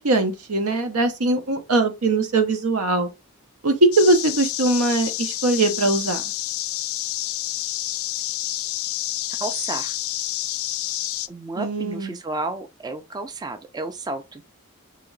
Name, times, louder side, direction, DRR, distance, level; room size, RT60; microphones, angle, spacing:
voice 1, 0.0-3.1 3.6-6.2 11.6-12.1, right 2 dB, 85° right, 0.8 m, -21 dB
sound 1, 3.9-11.3, left 14 dB, 70° left, 0.3 m, -29 dB
voice 2, 9.4-10.0 11.3-14.4, right 2 dB, 20° right, 0.3 m, -32 dB
2.9 x 2.9 x 3.8 m
head